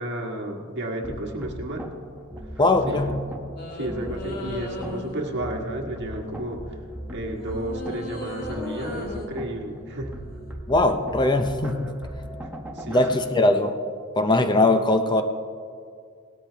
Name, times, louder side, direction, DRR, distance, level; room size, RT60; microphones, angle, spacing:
voice 1, 0.0-1.9 2.5-2.6 2.9-3.2 3.7-6.6 7.1-10.1 12.7-13.4, right 1 dB, 55° right, 1 dB, 1.6 m, -32 dB
sound 1, 1.0-13.2, right 1 dB, 10° right, 1.1 m, -38 dB
voice 2, 2.6-3.2 10.7-11.9 12.9-13.8 14.2-15.2, left 2 dB, 20° left, 7 dB, 0.6 m, -20 dB
sound 2, 3.6-5.4 7.4-9.3 10.3-10.5, left 1 dB, 45° left, 1.6 m, -36 dB
18.0 x 13.0 x 3.4 m, 2.2 s
head